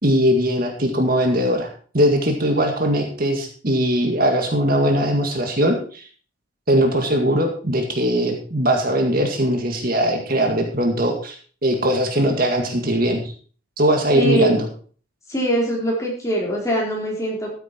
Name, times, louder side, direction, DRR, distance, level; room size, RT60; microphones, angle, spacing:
voice 1, 0.0-1.7 1.9-6.1 6.7-11.4 11.6-13.3 13.8-14.7, equal, 45° right, 3 dB, 2.0 m, -20 dB
voice 2, 14.1-14.5 15.3-17.5, equal, 15° left, -3 dB, 4.1 m, -22 dB
13.5 x 9.2 x 4.5 m, 0.42 s
head